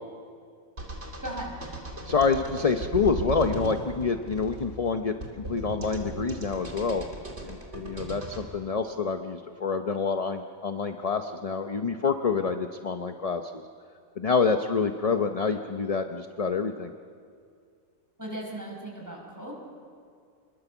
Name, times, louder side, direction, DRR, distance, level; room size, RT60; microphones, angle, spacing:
sound 1, 0.8-8.5, right 2 dB, 50° right, 3.1 m, -37 dB
voice 1, 1.2-1.5 18.2-19.5, right 1 dB, 15° right, -1 dB, 5.2 m, -37 dB
voice 2, 2.0-7.1 7.4-13.6 14.2-16.9, left 5 dB, 35° left, 6 dB, 0.7 m, -27 dB
27.5 x 21.5 x 7.1 m, 2.2 s
omnidirectional pair, 1.4 m